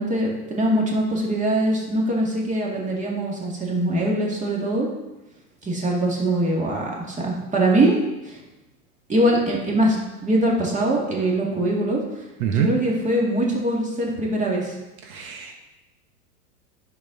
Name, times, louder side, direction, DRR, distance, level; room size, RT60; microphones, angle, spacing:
voice 1, 0.0-4.9 5.6-8.4 9.1-12.0 12.5-14.8, right 1 dB, 15° right, -2 dB, 2.0 m, -22 dB
voice 2, 15.1-15.6, right 9 dB, 65° right, 3 dB, 1.2 m, -24 dB
9.9 x 6.5 x 3.8 m, 1.0 s
hypercardioid pair, 120°, 47 cm